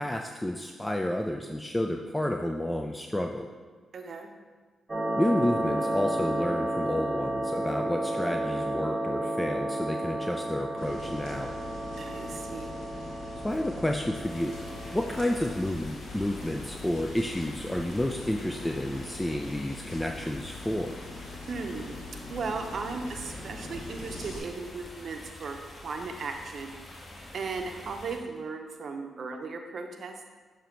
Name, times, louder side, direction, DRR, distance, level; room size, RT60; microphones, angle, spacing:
voice 1, 0.0-3.5 5.2-11.5 13.4-14.6 14.9-21.0, left 1 dB, 10° left, 3 dB, 0.4 m, -30 dB
voice 2, 3.9-4.3 11.9-12.7 21.5-22.0 22.3-25.6 25.8-26.7 27.3-30.1, right 4 dB, 60° right, 5 dB, 0.7 m, -36 dB
sound 1, 4.9-15.7, right 1 dB, 25° right, 1.3 m, -32 dB
sound 2, 10.8-24.4, left 3 dB, 90° left, 1.1 m, -43 dB
sound 3, 14.2-28.2, left 1 dB, 50° left, 1.6 m, -47 dB
6.8 x 3.1 x 4.5 m, 1.4 s
supercardioid pair, 45°, 0 cm